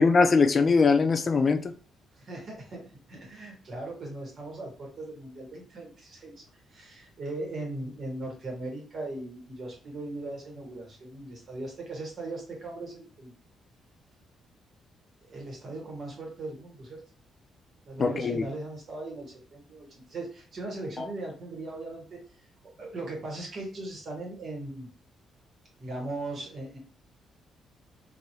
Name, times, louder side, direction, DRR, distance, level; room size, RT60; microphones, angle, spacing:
voice 1, 0.0-1.7 18.0-18.4 21.0-21.1, left 4 dB, 40° left, 0.3 m, -22 dB
voice 2, 2.1-6.4 6.7-13.3 15.2-17.0 17.9-22.2 22.8-24.9 25.8-26.8, right 2 dB, 50° right, 1.5 m, -39 dB
2.9 x 2.7 x 2.7 m
cardioid pair, 90°, 0 cm